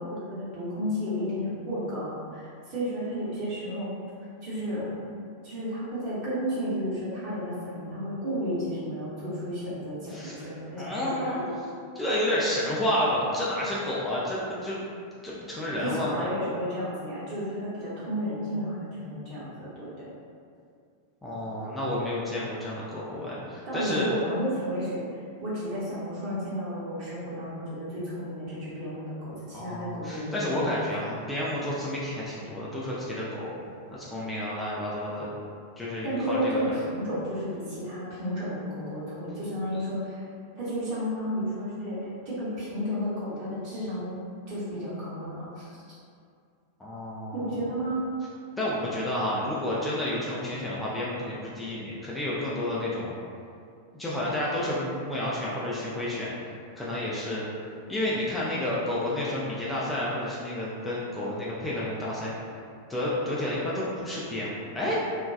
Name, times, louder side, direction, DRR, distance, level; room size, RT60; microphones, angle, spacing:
voice 1, 0.0-3.9 4.4-4.9 5.4-11.4 15.8-20.1 23.7-25.0 25.4-31.2 36.0-40.3 40.5-44.2 44.5-45.8 47.3-48.0, equal, 45° right, -9 dB, 1.0 m, -32 dB
voice 2, 10.1-10.5 10.8-11.6 12.0-14.8 15.2-16.3 21.2-24.1 29.5-33.5 33.9-35.3 35.8-36.7 46.8-47.5 48.6-53.1 53.9-56.3 56.8-57.4 57.9-62.3 62.9-65.0, left 1 dB, 10° left, -7 dB, 0.4 m, -30 dB
2.4 x 2.2 x 2.3 m, 2.3 s
figure-of-eight pair, 90°, 0 cm